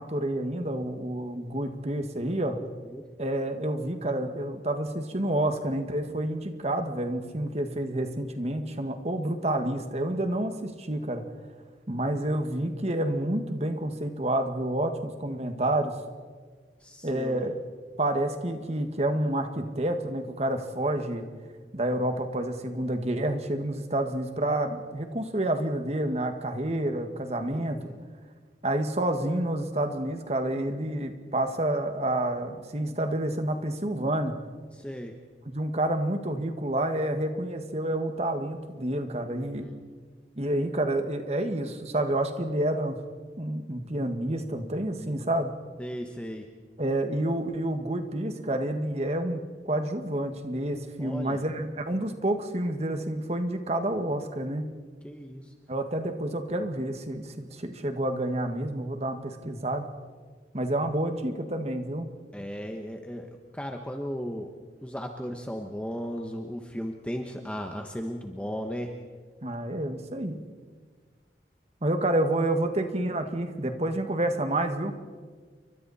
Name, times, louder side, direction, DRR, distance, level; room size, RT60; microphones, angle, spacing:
voice 1, 0.0-2.6 3.2-11.2 11.9-16.0 17.0-17.6 18.0-21.2 21.7-27.9 28.6-34.3 35.5-39.7 40.4-43.0 43.4-45.5 46.8-54.7 55.7-59.9 60.5-62.1 69.4-70.4 71.8-74.9, right 1 dB, 35° right, 6 dB, 1.8 m, -29 dB
voice 2, 2.6-3.1 16.8-17.5 27.5-28.0 34.7-35.1 39.3-39.8 45.8-46.5 51.0-51.4 55.0-55.5 62.3-64.5 64.8-69.0, equal, 5° left, 3 dB, 1.2 m, -36 dB
29.5 x 24.0 x 4.3 m, 1.6 s
head